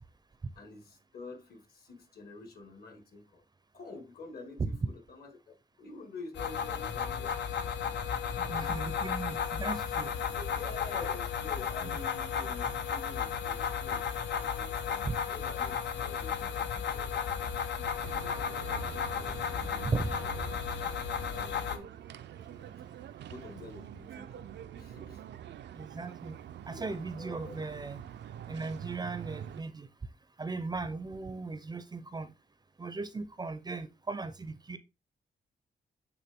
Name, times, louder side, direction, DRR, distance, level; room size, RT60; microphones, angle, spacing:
voice 1, 0.6-3.4 3.7-7.4 8.6-8.9 10.2-17.8 18.2-19.9 20.2-20.5 21.3-22.7 23.3-24.5 24.7-25.2 26.7-26.8 27.2-27.5, left 3 dB, 60° left, 1.8 m, -49 dB
sound 1, 6.3-21.8, left 7 dB, 90° left, 0.9 m, -34 dB
voice 2, 8.4-10.1 11.8-11.9 14.6-14.7 15.0-15.2 19.8-20.1 25.7-26.4 26.7-28.0 28.5-29.9 30.4-32.3 32.8-34.8, right 3 dB, 25° right, 0.5 m, -37 dB
sound 2, 18.0-29.6, right 10 dB, 85° right, 0.5 m, -45 dB
8.5 x 3.5 x 3.5 m
wide cardioid pair, 160°, 18 cm